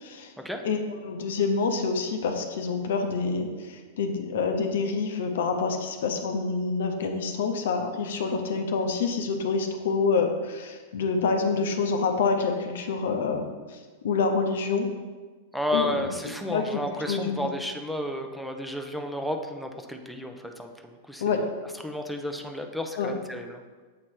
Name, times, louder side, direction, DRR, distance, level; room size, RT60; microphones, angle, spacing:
voice 1, 0.0-0.3 0.6-13.8 14.0-14.9 15.7-16.1 16.5-16.8 17.1-17.5 21.2-21.4 23.0-23.1, left 4 dB, 70° left, 5 dB, 0.7 m, -27 dB
voice 2, 15.5-21.5 21.8-23.6, left 1 dB, ahead, 4 dB, 0.6 m, -32 dB
7.5 x 3.1 x 4.3 m, 1.4 s
hypercardioid pair, 105°, 0 cm